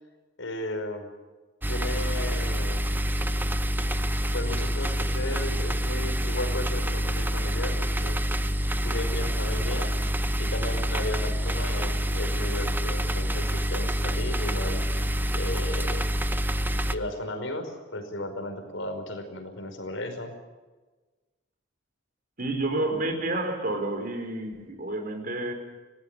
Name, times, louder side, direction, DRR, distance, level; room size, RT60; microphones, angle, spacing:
voice 1, 0.4-1.1 1.7-2.8 4.3-8.2 8.8-9.9 10.4-14.8 15.3-16.3 16.9-20.3, left 1 dB, 85° left, 6 dB, 5.2 m, -35 dB
sound 1, 1.6-17.0, equal, 10° right, 0.8 m, -27 dB
voice 2, 22.4-25.5, right 2 dB, 50° right, 6 dB, 4.6 m, -29 dB
26.0 x 19.0 x 7.0 m, 1.2 s
head